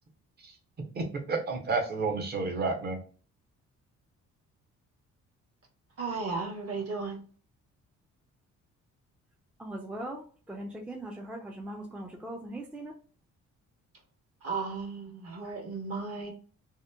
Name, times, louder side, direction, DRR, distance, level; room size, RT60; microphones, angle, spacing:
voice 1, 0.9-3.0, right 4 dB, 35° right, 2 dB, 0.7 m, -30 dB
voice 2, 6.0-7.2 14.4-16.3, right 4 dB, 50° right, 1 dB, 1.1 m, -35 dB
voice 3, 9.6-12.9, right 1 dB, 5° right, 1 dB, 0.4 m, -40 dB
2.8 x 2.0 x 2.2 m, 0.39 s
cardioid pair, 90°, 30 cm